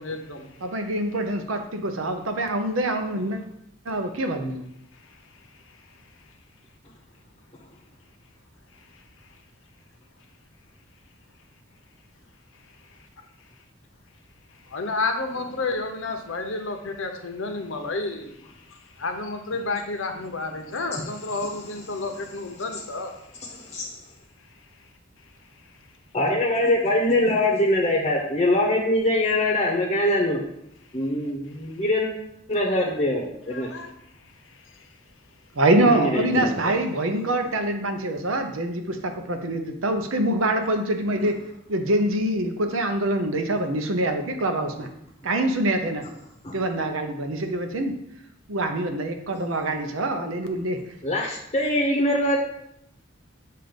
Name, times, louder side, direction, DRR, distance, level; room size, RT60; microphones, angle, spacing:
voice 1, 0.0-0.5 4.9-5.2 8.8-8.9 14.6-23.1 33.5-34.0 34.3-34.9, left 3 dB, 70° left, 5 dB, 0.9 m, -31 dB
voice 2, 0.6-3.4 3.9-4.6 35.6-41.4 41.7-44.9 45.2-46.1 46.5-47.9 48.5-50.8, right 1 dB, 75° right, 6 dB, 0.7 m, -25 dB
voice 3, 23.5-23.9 26.1-30.4 30.9-32.1 32.5-33.7 35.8-36.5 46.4-46.6 51.0-52.4, left 1 dB, 30° left, -1 dB, 0.8 m, -23 dB
7.6 x 2.6 x 5.2 m, 0.77 s
head